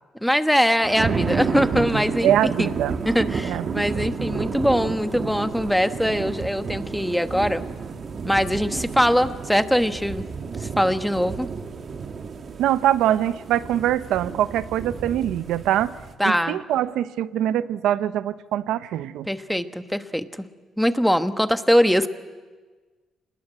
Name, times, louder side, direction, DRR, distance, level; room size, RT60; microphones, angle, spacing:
voice 1, 0.2-2.3 2.6-2.7 3.0-7.6 8.2-10.2 10.6-11.5 16.2-16.6 19.3-20.3 20.8-22.1, equal, ahead, 10 dB, 1.2 m, -22 dB
sound 1, 0.8-16.1, right 5 dB, 50° right, 2.1 m, -31 dB
voice 2, 2.2-3.0 3.4-4.0 12.6-16.0 16.2-19.3, right 11 dB, 85° right, 14 dB, 0.7 m, -23 dB
27.5 x 20.0 x 8.9 m, 1.4 s
cardioid pair, 90°, 0 cm